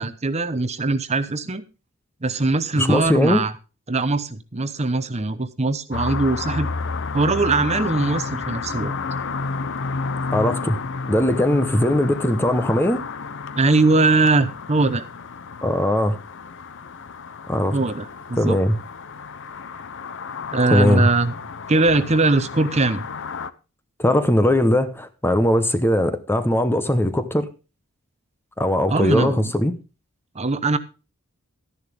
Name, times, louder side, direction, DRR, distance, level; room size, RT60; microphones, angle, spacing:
voice 1, 0.0-1.6 2.2-3.5 3.9-6.7 7.1-8.9 13.5-15.1 17.7-18.6 20.5-21.3 21.7-23.0 28.9-29.5 30.3-30.8, right 3 dB, 30° right, 0.8 m, -21 dB
voice 2, 2.7-3.4 10.3-10.8 11.1-13.0 15.6-16.2 17.5-17.8 18.4-18.8 20.7-21.1 24.0-27.5 28.6-29.8, left 1 dB, 10° left, 0.8 m, -19 dB
sound 1, 5.9-23.5, left 4 dB, 55° left, 0.7 m, -31 dB
13.0 x 10.5 x 3.4 m
head